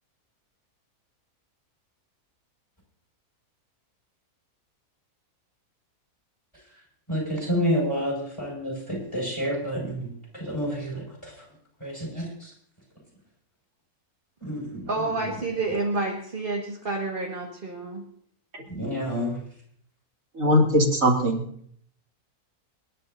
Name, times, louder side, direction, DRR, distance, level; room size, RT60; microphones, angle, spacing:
voice 1, 7.1-11.3 11.8-12.3 14.4-15.3 18.7-19.4, equal, 20° left, -2 dB, 5.8 m, -29 dB
voice 2, 14.9-18.0, right 3 dB, 35° right, -1 dB, 1.7 m, -29 dB
voice 3, 20.4-21.4, equal, 60° right, -2 dB, 3.1 m, -20 dB
29.5 x 10.0 x 2.7 m, 0.63 s
omnidirectional pair, 1.6 m